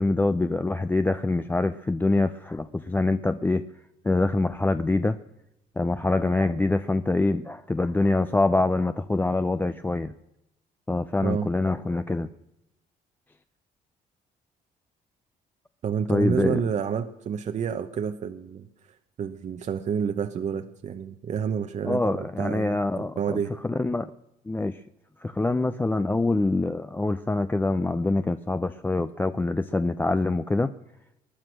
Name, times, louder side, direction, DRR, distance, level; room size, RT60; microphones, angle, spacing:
voice 1, 0.0-3.7 4.0-5.2 5.8-10.2 10.9-12.3 16.1-16.6 21.8-24.1 24.5-24.8 25.2-30.7, left 2 dB, 10° left, 0.5 m, -25 dB
voice 2, 15.8-18.7 19.2-23.5, right 7 dB, 45° right, 0.9 m, -29 dB
20.0 x 11.0 x 6.3 m
cardioid pair, 110°, 17 cm